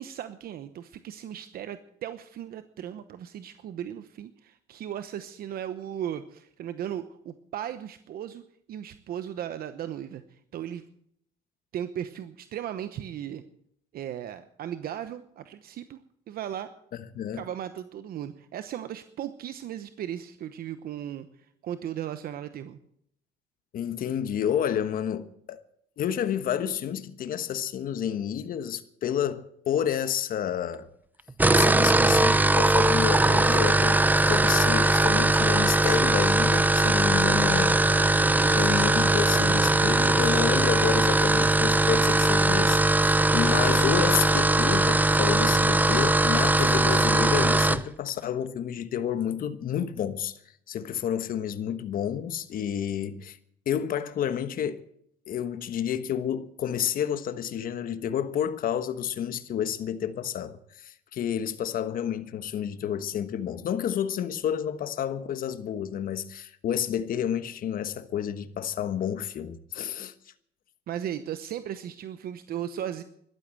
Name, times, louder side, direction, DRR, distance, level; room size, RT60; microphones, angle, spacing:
voice 1, 0.0-8.4 8.7-10.8 11.7-13.4 13.9-16.7 17.3-21.3 21.6-22.8 38.2-38.8 39.1-39.5 70.9-73.0, right 10 dB, 60° right, 1.0 m, -36 dB
voice 2, 23.7-25.6 26.0-30.9 31.5-37.8 38.5-50.4 50.7-53.4 53.7-54.8 55.3-70.1, left 9 dB, 55° left, 1.3 m, -30 dB
sound 1, 31.3-47.8, right 2 dB, 10° right, 0.7 m, -21 dB
13.5 x 12.0 x 7.6 m
cardioid pair, 110°, 17 cm